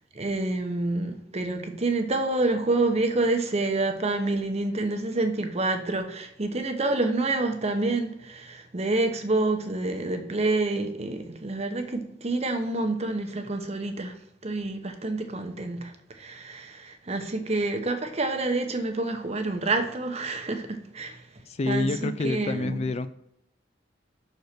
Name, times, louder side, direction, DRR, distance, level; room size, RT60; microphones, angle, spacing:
voice 1, 0.1-21.3 21.7-22.9, right 2 dB, 35° right, 0.9 m, -28 dB
voice 2, 21.5-23.1, left 2 dB, 35° left, 0.4 m, -28 dB
6.4 x 4.4 x 6.5 m
head